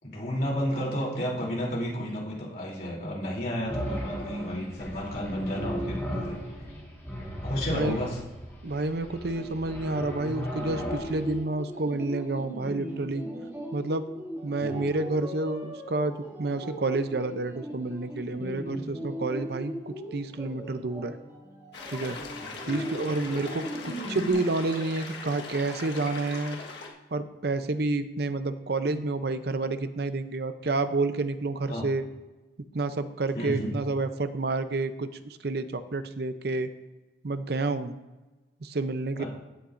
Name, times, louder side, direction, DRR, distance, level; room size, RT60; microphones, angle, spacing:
voice 1, 0.0-6.4 7.4-8.2 14.6-14.9 22.6-22.7 31.7-31.8 33.3-33.7 39.2-39.3, equal, 50° left, -4 dB, 3.2 m, -31 dB
sound 1, 3.7-11.4, equal, 15° left, 3.5 m, -36 dB
voice 2, 7.7-8.0 8.6-13.2 13.7-14.0 14.4-21.2 21.9-22.2 22.7-23.7 24.1-26.6 27.1-32.0 32.7-36.7 37.2-37.9 38.6-39.2, right 2 dB, 55° right, 11 dB, 0.6 m, -29 dB
sound 2, 10.5-24.3, equal, 15° right, 2.1 m, -39 dB
sound 3, 21.7-26.9, left 3 dB, 70° left, 1.5 m, -40 dB
15.5 x 8.5 x 2.6 m, 1.1 s
head